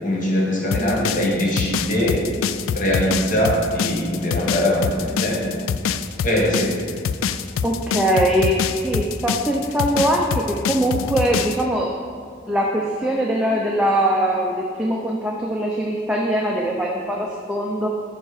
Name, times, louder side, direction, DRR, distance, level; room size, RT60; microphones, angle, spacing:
voice 1, 0.0-2.2 2.7-5.6 6.2-6.9, equal, 40° left, -2 dB, 1.3 m, -21 dB
sound 1, 0.7-11.6, left 7 dB, 85° left, 0.3 m, -25 dB
voice 2, 7.6-11.9 12.5-17.9, right 1 dB, 5° right, -2 dB, 0.5 m, -22 dB
7.1 x 5.6 x 4.9 m, 2.1 s
head